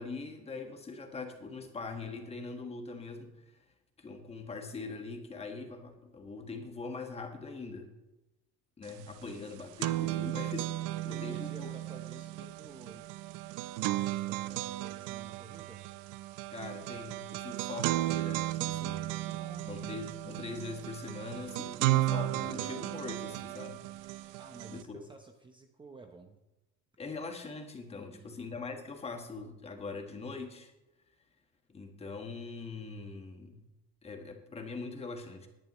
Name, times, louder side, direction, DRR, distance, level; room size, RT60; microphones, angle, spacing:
voice 1, 0.0-3.6 4.0-7.9 8.8-10.7 11.0-11.7 16.5-19.2 19.7-24.3 24.7-25.0 27.0-30.7 31.7-33.6 34.0-35.5, left 4 dB, 20° left, 5 dB, 1.5 m, -42 dB
sound 1, 8.9-9.0 9.3-24.8, right 16 dB, 80° right, 0.5 m, -35 dB
voice 2, 11.1-13.1 13.8-15.8 18.6-19.8 24.4-26.4 27.9-28.3, right 3 dB, 15° right, 4 dB, 0.8 m, -52 dB
18.5 x 10.5 x 3.1 m, 0.96 s
cardioid pair, 150°, 30 cm